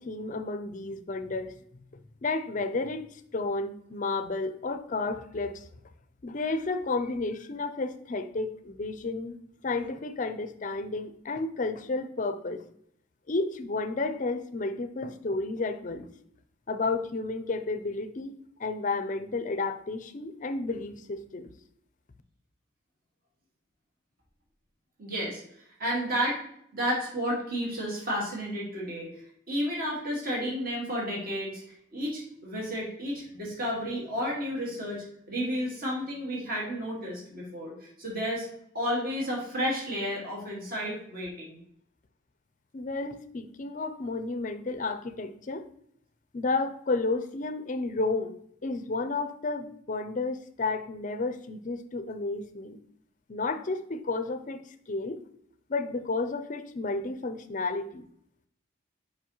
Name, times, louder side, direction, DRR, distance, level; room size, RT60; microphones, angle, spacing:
voice 1, 0.0-1.5 2.2-5.7 6.2-9.4 9.6-12.7 13.3-16.1 16.7-18.3 18.6-21.5 42.7-45.7 46.3-48.4 48.6-52.8 53.3-55.2 55.7-58.0, left 3 dB, 40° left, 11 dB, 0.5 m, -32 dB
voice 2, 25.0-25.4 25.8-26.4 26.7-29.1 29.5-31.6 31.9-38.5 38.7-41.6, equal, 45° right, -3 dB, 1.8 m, -32 dB
7.0 x 5.0 x 3.0 m, 0.69 s
head